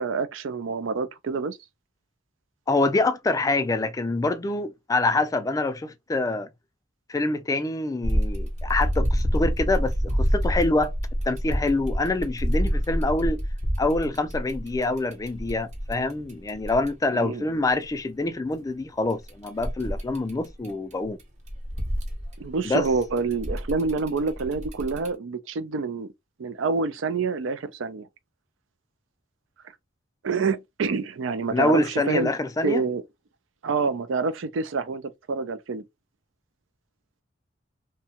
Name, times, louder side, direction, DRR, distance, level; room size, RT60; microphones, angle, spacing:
voice 1, 0.0-1.6 17.1-17.6 22.4-26.1 26.4-28.1 30.2-32.3 32.6-33.0 33.6-35.8, right 4 dB, 85° right, 0.4 m, -27 dB
voice 2, 2.7-6.5 7.1-10.9 11.3-13.4 13.8-21.2 22.6-22.9 31.5-32.8, left 2 dB, 20° left, 0.3 m, -25 dB
sound 1, 8.0-16.9 19.1-20.9 21.2-25.1, equal, 40° right, 0.8 m, -27 dB
2.7 x 2.2 x 2.8 m
head